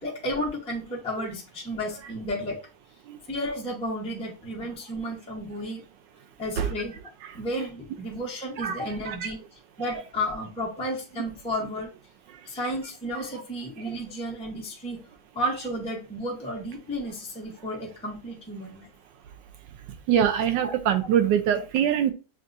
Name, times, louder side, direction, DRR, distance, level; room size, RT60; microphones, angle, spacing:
voice 1, 0.0-2.6 3.3-5.9 6.4-7.0 7.3-9.4 9.8-11.9 12.5-15.0 15.3-18.9 20.6-20.7, equal, 10° left, -3 dB, 0.4 m, -32 dB
voice 2, 20.1-22.1, right 9 dB, 80° right, 7 dB, 1.2 m, -24 dB
7.1 x 2.4 x 2.4 m, 0.33 s
omnidirectional pair, 2.0 m